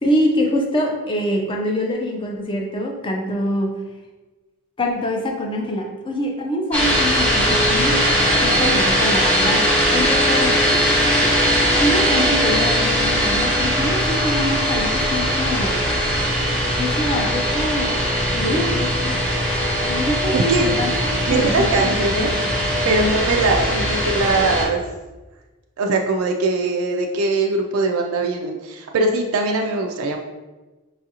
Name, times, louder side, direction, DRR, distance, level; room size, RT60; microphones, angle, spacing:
voice 1, 0.0-3.7 4.8-10.6 11.8-15.8 16.7-17.9 18.3-19.2 19.6-22.6 22.8-23.1, left 1 dB, 20° left, 1 dB, 0.5 m, -25 dB
sound 1, 6.7-24.6, equal, 5° left, 0.9 m, -20 dB
voice 2, 20.3-20.7 21.3-22.3 22.8-24.8 25.8-30.2, right 3 dB, 65° right, 2 dB, 0.3 m, -21 dB
5.3 x 2.4 x 2.8 m, 1.2 s
head